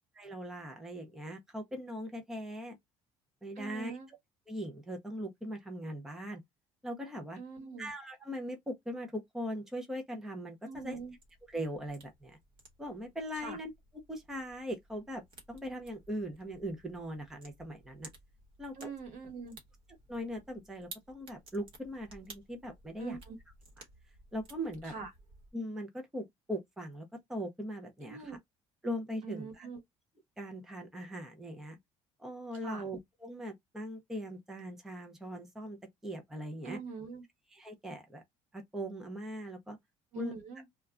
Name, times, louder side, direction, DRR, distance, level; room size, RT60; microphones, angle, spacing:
voice 1, 0.2-2.8 3.4-4.2 4.5-6.4 6.8-7.4 7.8-11.0 11.5-12.4 12.8-13.7 14.1-18.1 18.6-18.9 20.1-23.2 24.3-24.9 25.5-28.4 28.8-29.7 30.4-31.8 32.2-36.8 37.5-38.2 38.5-39.8 40.1-40.3, equal, 5° right, 0.5 m, -40 dB
voice 2, 3.6-4.1 7.4-7.9 10.6-11.1 13.4-13.6 18.8-19.6 23.0-23.4 24.8-25.1 28.0-28.4 29.2-29.8 32.6-32.8 36.6-37.2 40.1-40.7, right 5 dB, 70° right, 1.3 m, -43 dB
sound 1, 10.8-25.5, right 3 dB, 45° right, 1.0 m, -56 dB
2.2 x 2.2 x 3.6 m
cardioid pair, 165°, 12 cm